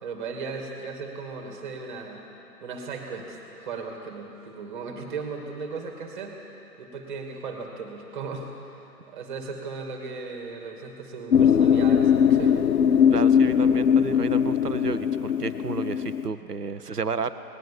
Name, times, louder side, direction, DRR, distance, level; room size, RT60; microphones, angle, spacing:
voice 1, 0.0-2.2 2.6-6.4 6.8-13.0 13.5-13.9, right 4 dB, 30° right, 3 dB, 2.6 m, -37 dB
sound 1, 11.3-16.3, left 8 dB, 70° left, 0.6 m, -20 dB
voice 2, 13.1-17.3, right 5 dB, 75° right, 11 dB, 1.1 m, -32 dB
19.5 x 19.5 x 7.3 m, 2.9 s
figure-of-eight pair, 135°, 48 cm